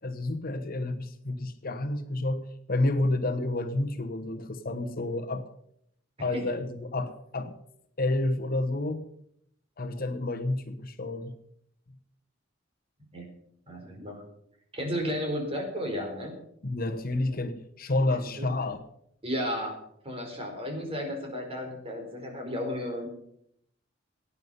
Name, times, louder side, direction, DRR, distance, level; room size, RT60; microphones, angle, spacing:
voice 1, 0.0-5.4 6.2-7.5 8.0-9.0 9.8-11.3 16.6-18.8, left 2 dB, 50° left, 7 dB, 1.1 m, -30 dB
voice 2, 13.7-14.2 14.7-16.3 18.1-18.5 19.2-19.8 20.0-23.1, equal, 30° right, 2 dB, 4.4 m, -33 dB
18.0 x 9.6 x 5.6 m, 0.73 s
head